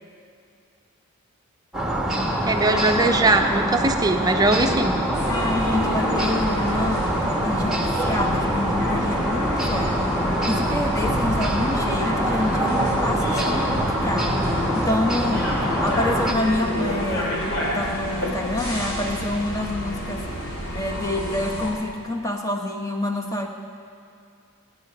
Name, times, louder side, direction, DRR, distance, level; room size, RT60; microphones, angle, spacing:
sound 1, 1.7-16.3, equal, ahead, 1.5 m, -24 dB
voice 1, 2.4-4.9, right 2 dB, 20° right, 5 dB, 0.7 m, -20 dB
sound 2, 5.1-21.7, equal, 80° left, 2.9 m, -29 dB
voice 2, 5.3-7.2 7.4-10.0 10.5-14.5 14.7-15.5 15.8-20.3 20.7-23.5, left 1 dB, 15° left, 2 dB, 1.1 m, -27 dB
17.0 x 9.4 x 5.3 m, 2.3 s
head